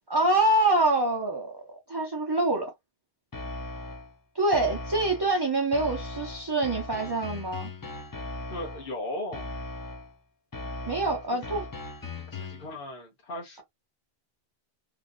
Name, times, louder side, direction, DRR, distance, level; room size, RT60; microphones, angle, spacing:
voice 1, 0.1-2.7 4.3-7.7 10.9-11.7, right 2 dB, 30° right, 0.6 m, -25 dB
sound 1, 3.3-4.1 4.5-5.3 5.7-8.9 9.3-10.1 10.5-12.7, left 2 dB, 25° left, 0.5 m, -38 dB
voice 2, 8.5-9.4 11.3-11.7 12.2-13.6, left 1 dB, 60° left, 1.2 m, -37 dB
3.1 x 2.6 x 2.5 m
omnidirectional pair, 1.1 m